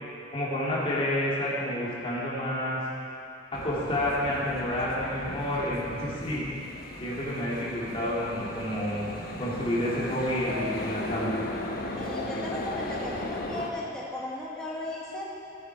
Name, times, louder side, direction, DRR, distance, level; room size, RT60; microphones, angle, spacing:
voice 1, 0.3-2.8 3.5-6.5 7.0-9.1 9.4-11.3, left 1 dB, 30° left, -7 dB, 2.6 m, -29 dB
sound 1, 3.5-13.7, left 1 dB, 55° left, 1.1 m, -36 dB
voice 2, 12.0-15.3, left 1 dB, 5° left, -6 dB, 1.4 m, -36 dB
14.0 x 8.2 x 4.7 m, 2.6 s
head